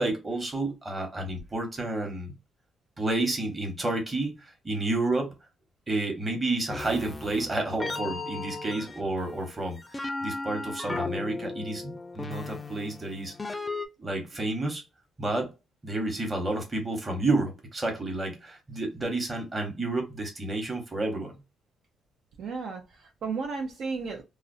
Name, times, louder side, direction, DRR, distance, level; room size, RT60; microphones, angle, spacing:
voice 1, 0.0-2.4 3.0-5.3 5.9-13.3 14.0-14.8 15.2-15.5 15.8-21.3, right 2 dB, 25° right, 1.1 m, -30 dB
sound 1, 6.7-13.9, left 3 dB, 20° left, 0.4 m, -36 dB
voice 2, 22.4-24.2, right 4 dB, 65° right, 0.5 m, -34 dB
2.4 x 2.0 x 2.5 m
cardioid pair, 90°, 0 cm